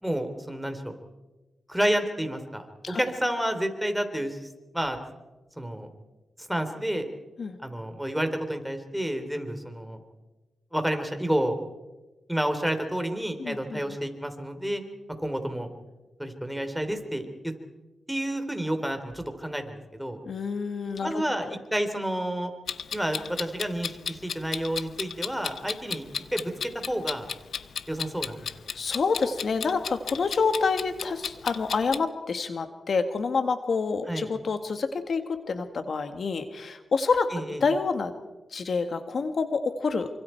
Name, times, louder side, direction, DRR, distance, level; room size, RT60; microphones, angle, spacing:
voice 1, 0.0-0.8 1.7-5.0 5.6-5.9 6.4-7.0 7.6-10.0 10.7-11.6 12.3-14.8 15.2-15.7 16.2-17.5 18.1-20.2 21.0-22.5 22.9-26.1 26.3-27.3 27.9-28.5 34.1-34.3 37.3-37.6, right 1 dB, 5° right, 6 dB, 3.6 m, -30 dB
voice 2, 13.4-13.8 20.2-21.2 28.7-37.3 37.6-38.1 38.5-40.1, left 4 dB, 60° left, 8 dB, 1.7 m, -27 dB
Clock, 22.7-32.0, left 7 dB, 75° left, 0.9 m, -34 dB
28.0 x 25.5 x 4.6 m, 1.1 s
cardioid pair, 80°, 0 cm